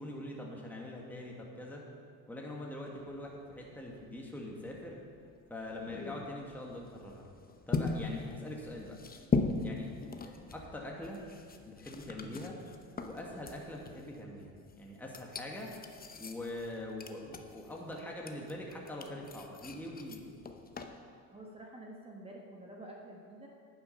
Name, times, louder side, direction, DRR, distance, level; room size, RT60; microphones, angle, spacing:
voice 1, 0.0-1.8 2.3-5.0 5.5-7.3 7.7-9.0 9.6-9.9 10.2-11.2 11.6-12.6 13.0-15.7 16.1-20.2, left 1 dB, 5° left, -2 dB, 1.6 m, -43 dB
sound 1, 3.0-20.9, left 4 dB, 25° left, 0.8 m, -40 dB
voice 2, 21.3-23.5, right 1 dB, 15° right, -1 dB, 1.3 m, -49 dB
9.6 x 7.1 x 5.6 m, 2.2 s
supercardioid pair, 85°, 36 cm